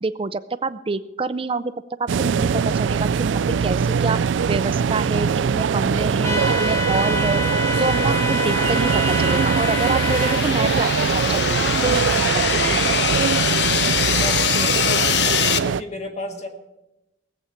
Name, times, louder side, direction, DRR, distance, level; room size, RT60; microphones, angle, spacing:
voice 1, 0.0-1.7 2.0-4.2 4.5-7.4 7.8-10.9 11.1-12.0 12.5-12.8, right 3 dB, 30° right, 13 dB, 0.5 m, -27 dB
sound 1, 2.1-15.8, right 6 dB, 85° right, 0.4 m, -22 dB
sound 2, 6.2-10.4, left 3 dB, 15° left, 0.8 m, -27 dB
sound 3, 6.6-15.6, left 8 dB, 65° left, 0.7 m, -24 dB
voice 2, 14.2-15.4 15.6-16.5, left 2 dB, 40° left, 4 dB, 1.8 m, -33 dB
18.0 x 8.1 x 5.8 m, 0.96 s
head